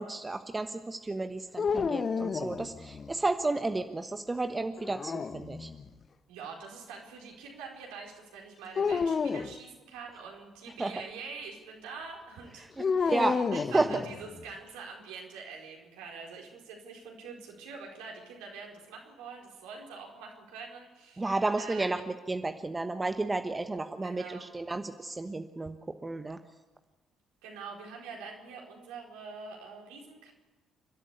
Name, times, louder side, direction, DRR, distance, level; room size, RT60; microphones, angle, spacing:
voice 1, 0.0-5.7 10.8-10.9 13.1-13.9 21.2-22.0 22.3-25.8 26.0-26.4, right 2 dB, 20° right, 8 dB, 1.2 m, -32 dB
sound 1, 1.6-3.1 4.8-5.9 8.8-9.6 12.8-14.4, left 5 dB, 40° left, 0.9 m, -31 dB
voice 2, 6.3-21.2 21.6-21.8 24.0-24.5 27.4-30.3, right 5 dB, 70° right, 0 dB, 4.5 m, -45 dB
29.5 x 13.0 x 8.3 m, 1.2 s
figure-of-eight pair, 45°, 0 cm